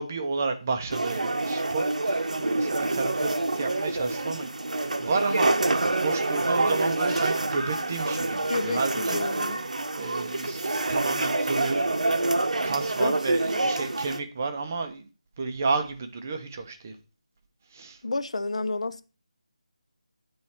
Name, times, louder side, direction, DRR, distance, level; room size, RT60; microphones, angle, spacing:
voice 1, 0.0-9.2 10.0-11.8 12.6-15.0 15.4-17.0 17.7-18.0, right 4 dB, 20° right, 0.5 m, -31 dB
sound 1, 0.9-14.2, right 2 dB, 85° right, 0.8 m, -27 dB
voice 2, 8.5-9.6 13.0-13.2 18.0-19.0, left 3 dB, 65° left, 0.5 m, -30 dB
9.3 x 3.1 x 4.2 m
figure-of-eight pair, 175°, 4 cm